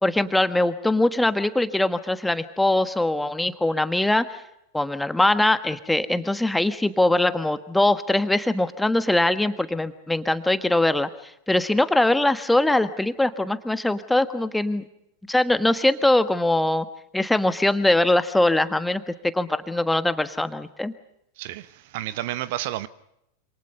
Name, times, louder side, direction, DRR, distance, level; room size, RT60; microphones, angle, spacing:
voice 1, 0.0-4.4 4.7-14.8 15.3-16.8 17.1-20.9, left 1 dB, 5° left, 12 dB, 1.4 m, -22 dB
voice 2, 21.4-22.9, right 14 dB, 50° right, 17 dB, 0.9 m, -31 dB
27.5 x 27.0 x 5.5 m, 0.80 s
figure-of-eight pair, 90°, 0 cm